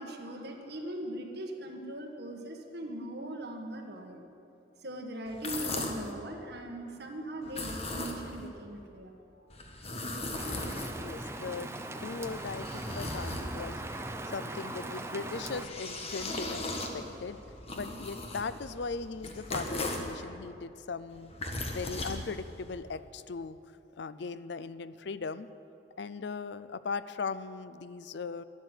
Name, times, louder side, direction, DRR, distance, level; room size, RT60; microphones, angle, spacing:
voice 1, 0.0-4.2 4.8-9.5, right 1 dB, 55° right, 2 dB, 1.6 m, -40 dB
sound 1, 5.3-6.1 7.4-8.5 9.5-11.3 12.0-13.9 15.3-20.2 21.1-22.8, left 2 dB, 30° left, 1.4 m, -38 dB
Rain, 10.3-15.7, right 2 dB, 15° right, 0.7 m, -40 dB
voice 2, 10.9-17.4 17.7-21.3 21.7-23.6 24.0-25.5 26.0-28.4, left 4 dB, 60° left, 14 dB, 0.5 m, -39 dB
12.5 x 11.5 x 8.2 m, 2.8 s
head